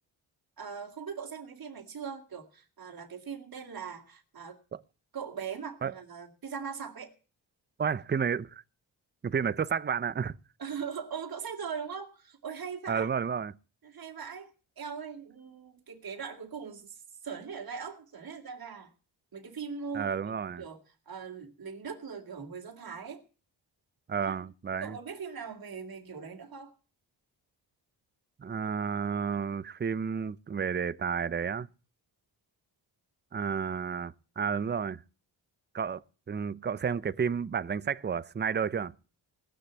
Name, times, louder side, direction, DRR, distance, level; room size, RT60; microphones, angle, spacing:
voice 1, 0.6-4.6 5.1-7.1 10.6-13.1 13.8-18.9 19.3-23.2 24.2-24.5 24.8-26.8, right 6 dB, 50° right, 2.4 m, -40 dB
voice 2, 7.8-8.6 9.2-10.4 12.9-13.6 19.9-20.6 24.1-25.0 28.4-31.7 33.3-35.0 35.7-36.0 36.3-38.9, right 6 dB, 25° right, 0.6 m, -31 dB
18.0 x 6.7 x 8.3 m
cardioid pair, 70°, 46 cm